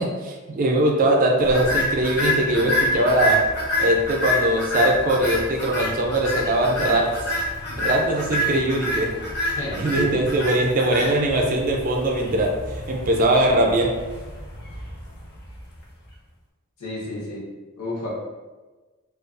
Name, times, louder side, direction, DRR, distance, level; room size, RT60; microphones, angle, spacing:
voice 1, 0.0-3.4 3.8-7.1 7.7-9.1 9.8-13.9, right 1 dB, 40° right, 1 dB, 0.3 m, -21 dB
sound 1, 1.5-15.8, left 1 dB, 50° left, 0.5 m, -27 dB
voice 2, 9.6-10.3 16.8-17.5 17.8-18.1, left 1 dB, 90° left, -5 dB, 0.8 m, -30 dB
2.3 x 2.2 x 2.4 m, 1.2 s
head